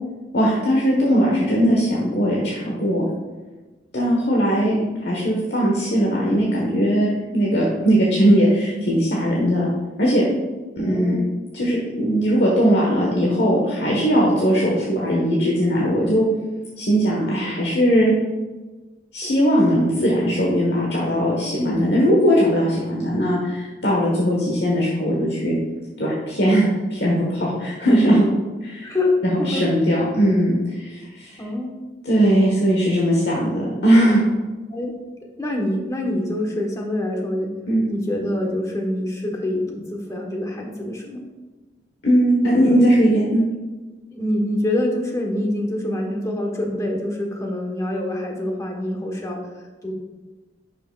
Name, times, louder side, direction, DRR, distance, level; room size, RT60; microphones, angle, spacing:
voice 1, 0.3-3.0 3.9-4.7 5.0-9.7 10.0-10.2 10.8-11.2 11.5-16.3 16.8-18.1 19.1-25.5 26.0-28.2 28.6-28.9 29.2-31.4 32.0-34.2 37.7-37.8 42.0-43.4, equal, 70° left, -4 dB, 1.3 m, -19 dB
voice 2, 10.8-11.2 21.6-21.8 28.8-29.6 31.4-31.8 34.7-34.9 35.4-37.5 37.9-41.2 44.1-49.4 49.8-49.9, left 1 dB, 20° left, 1 dB, 1.1 m, -25 dB
10.5 x 5.8 x 2.4 m, 1.2 s
head